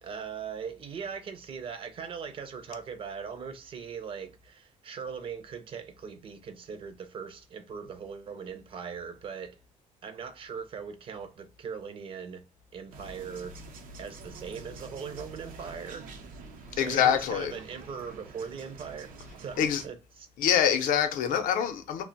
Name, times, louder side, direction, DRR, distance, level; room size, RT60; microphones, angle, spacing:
voice 1, 0.0-9.6 10.0-12.4 12.7-13.5 14.0-16.3 16.7-20.3, right 6 dB, 40° right, 0.4 m, -40 dB
sound 1, 12.9-19.9, right 3 dB, 90° right, 0.6 m, -47 dB
voice 2, 16.8-17.5 19.6-19.8 20.4-22.0, left 9 dB, 75° left, 0.5 m, -25 dB
2.4 x 2.0 x 3.8 m
cardioid pair, 165°, 14 cm